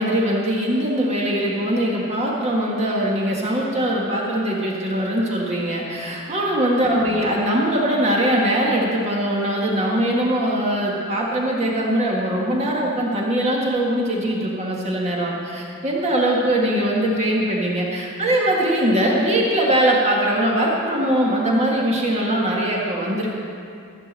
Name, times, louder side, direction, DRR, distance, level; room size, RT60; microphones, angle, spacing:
voice 1, 0.0-23.3, right 1 dB, 30° right, -3 dB, 1.6 m, -21 dB
14.5 x 6.1 x 7.5 m, 2.4 s
head